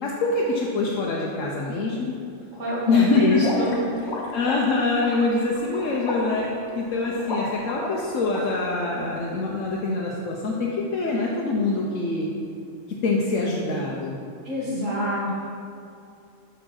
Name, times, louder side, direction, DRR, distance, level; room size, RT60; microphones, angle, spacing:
voice 1, 0.0-2.2 2.9-3.4 4.3-12.3 13.0-14.1, left 3 dB, 80° left, -3 dB, 1.2 m, -24 dB
voice 2, 2.5-3.8 14.4-15.4, equal, 80° right, -7 dB, 2.4 m, -25 dB
sound 1, 3.3-8.4, left 2 dB, 60° left, 1.5 m, -33 dB
6.2 x 5.6 x 6.3 m, 2.5 s
omnidirectional pair, 1.3 m